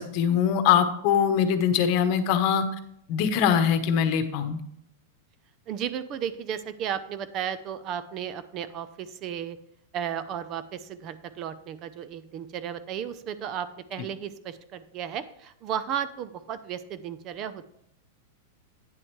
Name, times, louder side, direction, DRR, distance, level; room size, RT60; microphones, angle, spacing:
voice 1, 0.0-2.7 3.1-4.6, left 8 dB, 45° left, 9 dB, 1.0 m, -22 dB
voice 2, 5.7-9.6 9.9-17.7, right 9 dB, 35° right, 13 dB, 0.5 m, -34 dB
9.3 x 7.6 x 3.2 m, 0.74 s
supercardioid pair, 145°, 0 cm